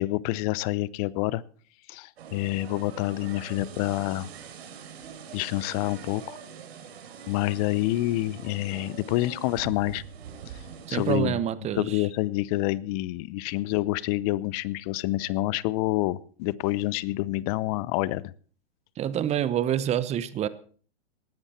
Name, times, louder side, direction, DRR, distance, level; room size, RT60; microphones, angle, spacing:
voice 1, 0.0-1.4 1.9-4.3 5.3-6.4 7.3-10.0 10.9-11.4 11.8-18.3, left 17 dB, 35° left, 0.7 m, -27 dB
sound 1, 2.2-11.2, right 7 dB, 70° right, 3.5 m, -44 dB
voice 2, 10.9-12.0 19.0-20.5, right 10 dB, 20° right, 1.0 m, -27 dB
18.5 x 13.5 x 4.4 m
hypercardioid pair, 130°, 32 cm